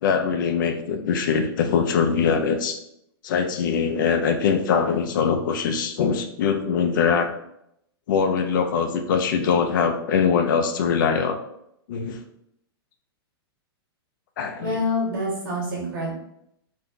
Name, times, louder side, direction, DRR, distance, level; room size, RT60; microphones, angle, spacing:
voice 1, 0.0-2.8 3.2-7.3 8.1-11.4 11.9-12.2 14.4-14.7, left 6 dB, 50° left, 5 dB, 0.4 m, -22 dB
voice 2, 14.6-16.1, left 1 dB, 55° right, -3 dB, 1.3 m, -26 dB
2.6 x 2.2 x 3.6 m, 0.76 s
supercardioid pair, 180°, 13 cm